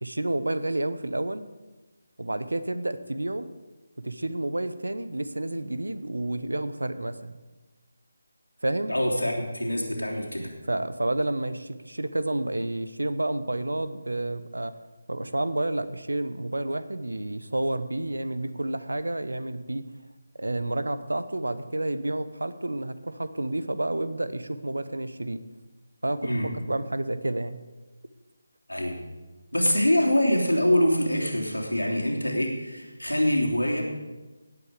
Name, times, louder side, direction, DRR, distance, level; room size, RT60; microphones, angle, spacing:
voice 1, 0.0-1.4 2.2-3.5 4.0-7.4 8.6-8.9 10.7-14.8 15.1-19.8 20.4-25.4 26.0-26.3 26.7-27.6, right 1 dB, 70° right, 13 dB, 0.9 m, -30 dB
voice 2, 8.9-10.5 26.2-26.6 28.7-29.0 29.5-33.8, left 1 dB, 85° left, -1 dB, 3.3 m, -24 dB
17.5 x 8.6 x 5.0 m, 1.2 s
figure-of-eight pair, 155°, 0 cm